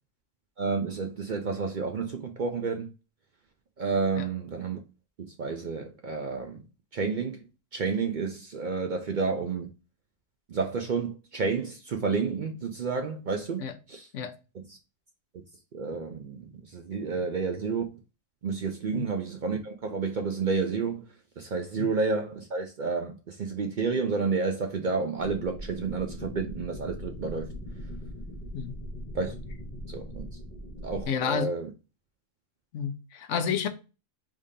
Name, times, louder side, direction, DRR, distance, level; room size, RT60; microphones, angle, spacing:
voice 1, 0.6-2.9 3.8-4.8 5.2-6.6 6.9-7.4 7.7-9.7 10.5-13.6 13.9-14.1 15.7-17.8 18.4-21.0 21.4-27.5 29.1-29.3 29.9-30.3 30.8-31.7, right 4 dB, 55° right, 0.6 m, -30 dB
sound 1, 25.2-31.1, equal, 50° left, 1.7 m, -40 dB
voice 2, 31.1-31.5 32.7-33.7, left 7 dB, 75° left, 1.0 m, -30 dB
4.9 x 3.7 x 2.7 m
omnidirectional pair, 1.3 m